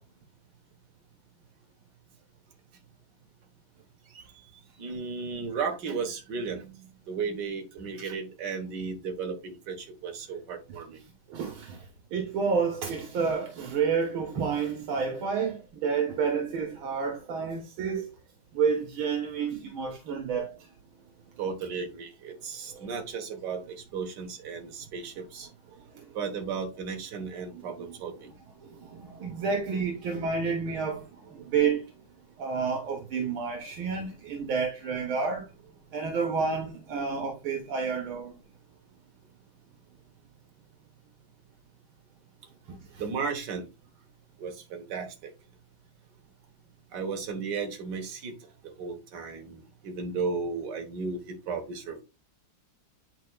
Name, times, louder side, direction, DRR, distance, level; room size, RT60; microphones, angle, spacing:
voice 1, 4.8-11.0 21.4-25.5 26.2-28.3 43.0-43.7 44.4-45.1 46.9-48.3 48.6-52.0, right 5 dB, 60° right, 2.0 m, -35 dB
voice 2, 11.3-18.1 18.5-20.7 22.7-22.9 25.9-26.1 27.5-27.9 28.6-31.9 32.4-35.5 35.9-38.3 42.7-43.0, right 5 dB, 85° right, 2.0 m, -30 dB
10.0 x 4.6 x 2.3 m
omnidirectional pair, 2.2 m